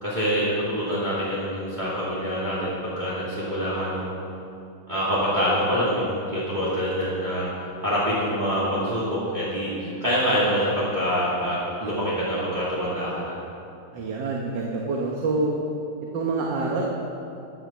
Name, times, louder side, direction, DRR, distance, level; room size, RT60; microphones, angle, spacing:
voice 1, 0.0-4.2 4.9-7.5 7.8-13.4, equal, 25° right, -10 dB, 2.6 m, -25 dB
voice 2, 13.9-15.5 16.1-16.9, right 3 dB, 80° right, -1 dB, 1.8 m, -26 dB
10.5 x 10.5 x 7.3 m, 2.7 s
omnidirectional pair, 2.0 m